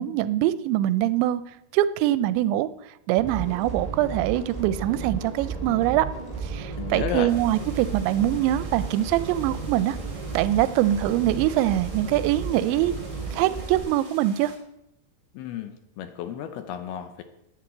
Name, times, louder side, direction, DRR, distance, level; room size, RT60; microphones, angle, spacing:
voice 1, 0.0-1.4 1.7-2.7 3.1-6.1 6.4-10.0 10.3-12.9 13.3-14.5, right 13 dB, 85° right, 15 dB, 2.8 m, -23 dB
sound 1, 3.2-13.8, right 4 dB, ahead, 3.7 m, -34 dB
voice 2, 6.8-7.3 15.3-17.2, left 9 dB, 75° left, 9 dB, 2.4 m, -33 dB
sound 2, 7.3-14.6, right 2 dB, 25° right, 2.8 m, -48 dB
10.5 x 10.0 x 7.8 m, 0.83 s
omnidirectional pair, 5.3 m